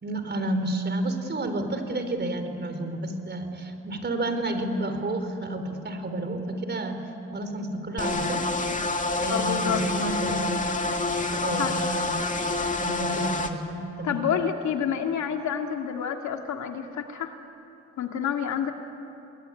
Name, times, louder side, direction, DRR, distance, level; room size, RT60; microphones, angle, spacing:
voice 1, 0.0-7.0 7.3-8.4 9.1-10.6 11.3-12.2 12.8-14.2, right 2 dB, 35° right, 7 dB, 4.1 m, -30 dB
sound 1, 8.0-13.5, left 3 dB, 25° left, 2.3 m, -27 dB
voice 2, 9.3-9.8 11.6-11.7 14.0-17.3 18.0-18.7, left 8 dB, 70° left, 4 dB, 2.5 m, -28 dB
29.0 x 21.0 x 9.9 m, 2.8 s
cardioid pair, 90°, 30 cm